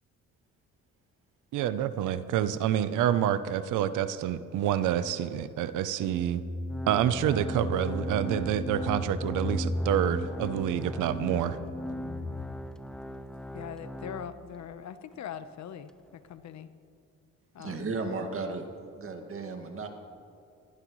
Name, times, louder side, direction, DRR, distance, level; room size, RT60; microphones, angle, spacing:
voice 1, 1.5-6.4 6.9-11.6, right 10 dB, 90° right, 13 dB, 0.7 m, -28 dB
sound 1, 6.0-12.3, left 1 dB, 25° left, 2.2 m, -35 dB
Organ, 6.7-14.7 15.1-15.2 15.9-16.0, equal, ahead, 0.6 m, -42 dB
voice 2, 13.5-16.7 17.5-17.9, left 8 dB, 65° left, 11 dB, 1.0 m, -42 dB
voice 3, 17.6-19.9, right 3 dB, 45° right, 4 dB, 2.1 m, -35 dB
21.5 x 15.5 x 3.2 m, 2.5 s
cardioid pair, 90°, 30 cm